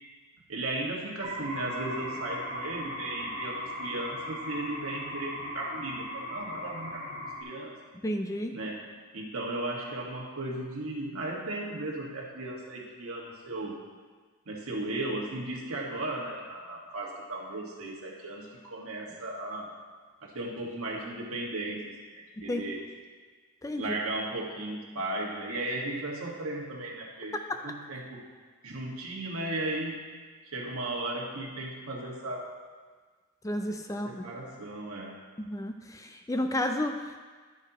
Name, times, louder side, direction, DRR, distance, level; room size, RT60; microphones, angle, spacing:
voice 1, 0.5-7.8 8.5-8.9 9.1-13.8 14.4-19.7 20.2-22.8 23.8-27.4 27.6-28.3 28.6-30.1 30.5-32.5 33.9-35.2, right 2 dB, 75° right, -3 dB, 1.7 m, -36 dB
sound 1, 1.2-7.4, equal, 30° right, 1.4 m, -38 dB
voice 2, 8.0-8.6 22.4-22.6 23.6-23.8 33.4-34.2 35.4-37.2, left 1 dB, 15° left, 5 dB, 0.4 m, -32 dB
11.0 x 8.9 x 3.0 m, 1.5 s
head